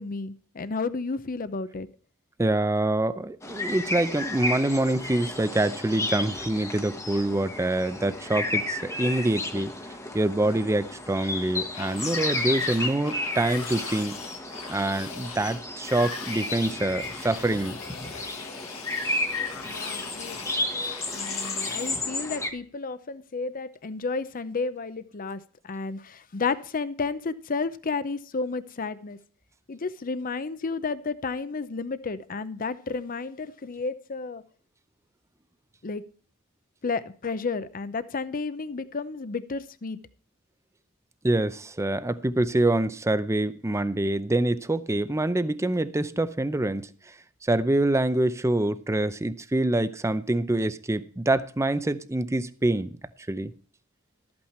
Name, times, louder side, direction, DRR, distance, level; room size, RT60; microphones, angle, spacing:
voice 1, 0.0-1.9 19.6-20.4 21.1-29.2 29.7-34.4 35.8-36.0 36.8-40.0, left 4 dB, 40° left, 0.6 m, -32 dB
voice 2, 2.4-9.7 10.1-14.2 14.7-17.8 41.2-46.8 47.4-53.0 53.3-53.5, right 1 dB, 15° right, 0.6 m, -25 dB
sound 1, 3.4-22.5, left 2 dB, 15° left, 1.1 m, -32 dB
sound 2, 11.7-22.0, left 6 dB, 90° left, 1.6 m, -41 dB
13.0 x 8.7 x 4.3 m
head